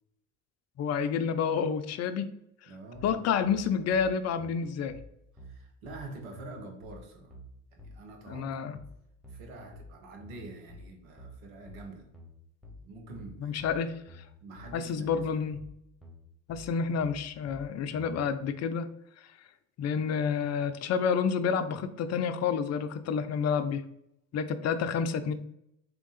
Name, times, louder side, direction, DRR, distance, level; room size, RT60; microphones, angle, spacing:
voice 1, 0.8-2.3 3.0-4.9 8.3-8.8 13.4-14.0 14.7-15.6 16.5-18.9 19.8-23.8 24.3-25.3, left 6 dB, 40° left, 10 dB, 0.5 m, -29 dB
voice 2, 2.7-3.3 5.4-7.3 7.7-8.8 9.3-12.1 12.6-13.6 14.4-15.3, right 2 dB, 80° right, 3 dB, 1.1 m, -46 dB
sound 1, 2.9-18.2, left 1 dB, ahead, 1.5 m, -49 dB
3.6 x 2.9 x 3.9 m, 0.78 s
hypercardioid pair, 70°, 41 cm